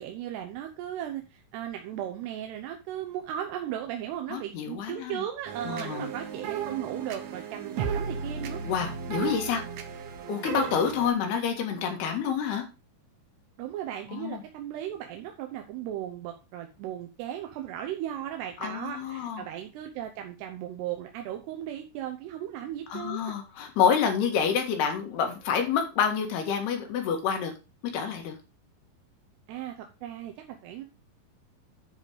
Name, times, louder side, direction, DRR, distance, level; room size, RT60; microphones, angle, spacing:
voice 1, 0.0-8.6 13.6-23.4 29.5-30.8, right 11 dB, 85° right, 4 dB, 3.0 m, -36 dB
voice 2, 4.3-5.2 5.6-6.1 8.6-9.6 10.3-12.7 14.1-14.4 18.6-19.5 22.9-27.5 27.9-28.4, left 7 dB, 80° left, 4 dB, 3.7 m, -28 dB
sound 1, 5.5-11.1, right 6 dB, 70° right, 1.6 m, -35 dB
10.0 x 5.3 x 5.0 m, 0.30 s
omnidirectional pair, 4.6 m